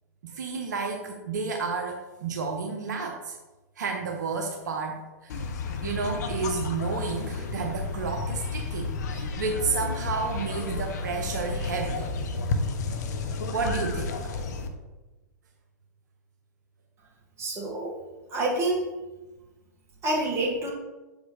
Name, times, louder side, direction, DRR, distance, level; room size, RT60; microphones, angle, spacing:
voice 1, 0.2-3.4 3.8-5.4 5.8-12.1 13.5-14.2, right 4 dB, 75° right, 2 dB, 0.8 m, -31 dB
sound 1, 5.3-14.7, left 3 dB, 65° left, 0.8 m, -31 dB
voice 2, 17.4-17.9 18.3-18.9 20.0-20.7, right 2 dB, 25° right, -3 dB, 2.2 m, -27 dB
7.2 x 5.1 x 3.4 m, 1.1 s
hypercardioid pair, 105°, 10 cm